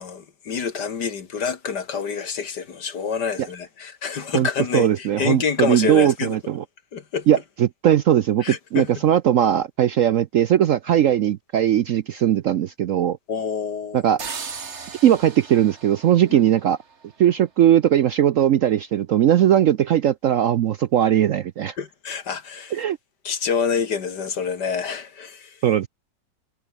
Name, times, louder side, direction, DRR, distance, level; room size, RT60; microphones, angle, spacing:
voice 1, 0.0-6.4 6.9-7.3 8.4-8.9 13.3-14.0 16.3-16.5 21.8-22.8 23.2-25.6, left 6 dB, 65° left, 2.3 m, -27 dB
voice 2, 4.7-6.6 7.3-13.2 13.9-14.2 15.0-16.8 17.2-21.7 22.7-23.0 25.6-25.9, right 10 dB, 70° right, 0.7 m, -19 dB
sound 1, 14.2-17.0, right 5 dB, 40° right, 1.7 m, -37 dB
omnidirectional pair, 2.0 m